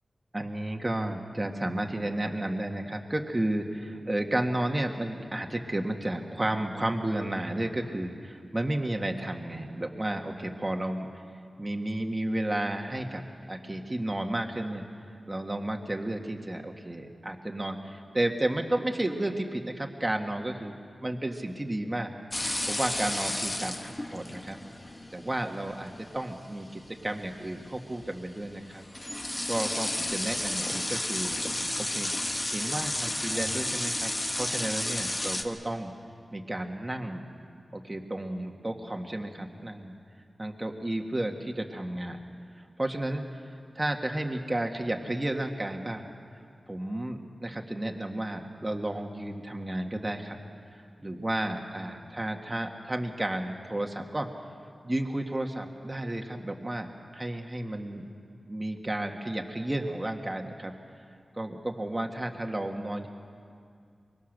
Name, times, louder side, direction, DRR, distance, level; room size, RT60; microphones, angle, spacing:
voice 1, 0.3-11.1 11.6-14.8 15.3-20.7 21.0-22.1 22.7-24.6 25.1-28.8 29.5-32.1 32.5-35.9 36.3-37.3 37.7-39.9 40.4-42.2 42.8-46.1 46.7-50.4 51.0-54.3 54.8-58.0 58.5-60.7 61.4-63.1, right 1 dB, 25° right, 3 dB, 1.8 m, -32 dB
sound 1, 22.3-35.4, left 1 dB, 30° left, 1.4 m, -32 dB
24.5 x 23.0 x 6.7 m, 2.3 s
wide cardioid pair, 85°, 0 cm